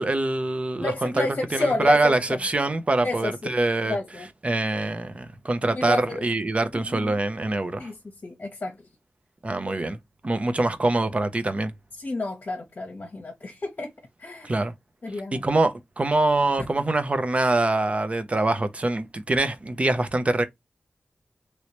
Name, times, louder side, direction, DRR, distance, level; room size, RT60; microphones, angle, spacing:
voice 1, 0.0-1.3 1.5-4.0 4.4-7.9 9.4-10.0 10.2-11.7 14.4-14.7 15.3-20.5, right 2 dB, 35° right, 0.6 m, -24 dB
voice 2, 0.8-2.4 3.0-3.5 3.9-4.3 5.6-6.2 6.7-7.2 7.8-8.0 8.2-8.8 12.0-13.9 14.2-14.5 15.0-15.4 16.6-16.7, left 2 dB, 50° left, 0.9 m, -30 dB
3.1 x 3.0 x 2.9 m
wide cardioid pair, 105°, 4 cm